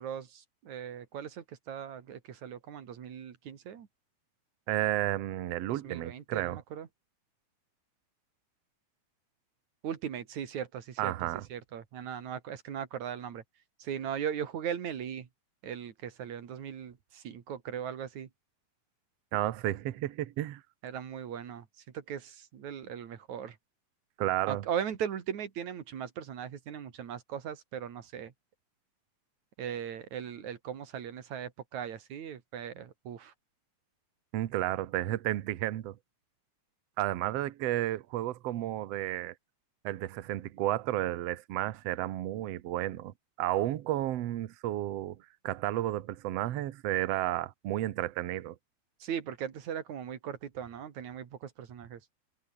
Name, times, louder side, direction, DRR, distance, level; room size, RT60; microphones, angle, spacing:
voice 1, 0.0-3.9 5.8-6.9 9.8-11.1 11.5-13.4 13.8-15.3 15.6-18.3 20.8-21.6 21.9-23.5 24.5-28.3 29.6-33.3 49.0-52.0, right 8 dB, 55° right, 3.2 m, -38 dB
voice 2, 4.7-6.6 11.0-11.4 19.3-20.6 24.2-24.6 34.3-36.0 37.0-39.3 39.8-45.2 45.4-48.5, right 14 dB, 80° right, 1.4 m, -32 dB
omnidirectional pair, 4.4 m